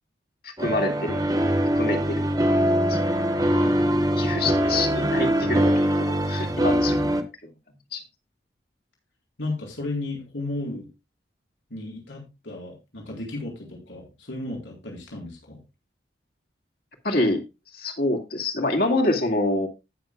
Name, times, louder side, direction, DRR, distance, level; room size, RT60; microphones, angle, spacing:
voice 1, 0.4-1.2 1.8-2.3 2.9-3.1 4.2-7.2 7.9-8.0 17.0-17.4 17.7-19.7, left 2 dB, 55° left, 3 dB, 2.2 m, -26 dB
sound 1, 0.6-7.2, equal, 20° right, 1.0 m, -22 dB
voice 2, 3.5-3.9 9.4-10.9 11.7-15.6, left 2 dB, 90° left, 0 dB, 4.2 m, -34 dB
19.0 x 6.6 x 2.3 m, 0.25 s
head